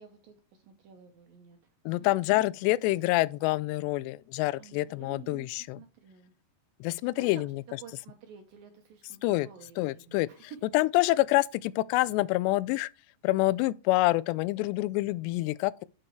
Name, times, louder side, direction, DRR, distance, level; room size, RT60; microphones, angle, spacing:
voice 1, 0.0-2.1 4.6-6.3 7.2-7.4 7.8-10.6, right 7 dB, 75° right, 2.1 m, -51 dB
voice 2, 1.9-5.8 6.8-7.6 9.2-9.5 9.8-12.9 13.2-15.9, left 19 dB, 85° left, 2.5 m, -27 dB
8.8 x 4.8 x 4.6 m
omnidirectional pair, 5.3 m